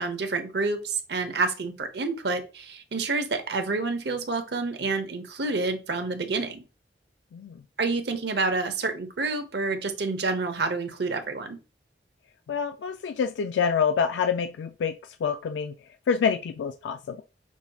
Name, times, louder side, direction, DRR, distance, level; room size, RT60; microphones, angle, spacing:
voice 1, 0.0-6.6 7.8-11.6, right 3 dB, 70° right, 0.7 m, -28 dB
voice 2, 12.5-14.9 15.2-15.7 16.1-17.2, left 6 dB, 85° left, 0.3 m, -26 dB
6.0 x 2.7 x 2.3 m
head